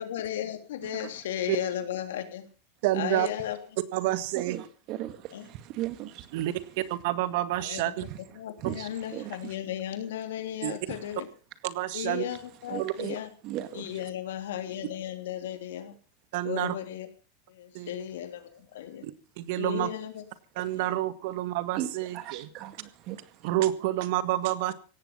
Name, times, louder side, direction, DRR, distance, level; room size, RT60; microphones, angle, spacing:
voice 1, 0.0-2.4 2.9-3.6 5.3-5.5 7.6-7.8 8.3-11.3 11.9-13.3 13.7-16.0 16.4-17.1 17.5-19.1 19.6-20.2 20.9-21.0, left 10 dB, 85° left, 3.1 m, -35 dB
voice 2, 2.8-3.3 3.9-4.6 6.3-8.0 10.6-10.7 11.6-12.2 12.8-12.9 16.3-16.7 17.7-17.9 19.0-19.9 20.5-22.5 23.4-24.7, right 15 dB, 65° right, 1.7 m, -29 dB
voice 3, 4.3-6.4 8.6-9.6 10.9-11.0 12.7-13.2 13.4-14.0 20.6-20.7 21.8-21.9 22.1-23.6, right 13 dB, 50° right, 2.3 m, -37 dB
17.0 x 14.0 x 5.6 m
supercardioid pair, 130°, 0 cm